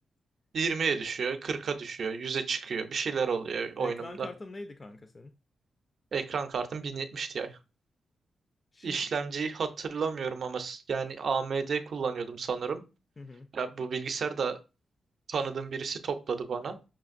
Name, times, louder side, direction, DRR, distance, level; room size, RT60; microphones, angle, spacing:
voice 1, 0.5-4.3 6.1-7.5 8.8-12.8 13.5-14.6 15.3-16.8, right 5 dB, 60° right, 0.5 m, -31 dB
voice 2, 3.8-5.3 8.7-9.1 13.2-13.5, left 2 dB, 35° left, 0.3 m, -43 dB
5.7 x 2.5 x 2.5 m
cardioid pair, 95°, 0 cm